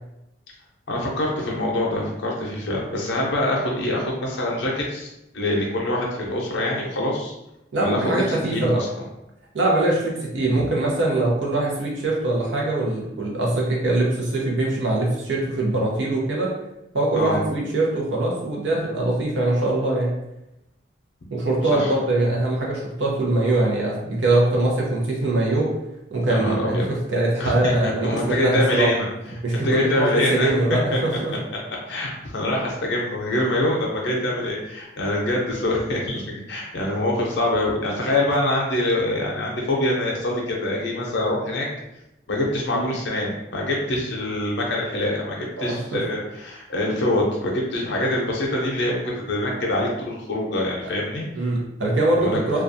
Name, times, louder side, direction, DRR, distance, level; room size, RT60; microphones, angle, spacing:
voice 1, 0.9-7.3 7.8-8.9 17.1-17.4 21.7-21.9 26.3-26.8 27.4-29.0 29.5-30.5 30.9-31.0 31.9-41.7 42.3-51.2 52.2-52.4, left 1 dB, 75° left, -2 dB, 0.5 m, -24 dB
voice 2, 7.7-8.8 9.5-16.5 16.9-20.1 21.3-25.7 26.1-28.9 29.4-31.3 42.7-43.0 45.6-46.0 51.4-52.6, right 2 dB, 85° right, -3 dB, 0.6 m, -22 dB
2.4 x 2.2 x 2.6 m, 0.89 s
head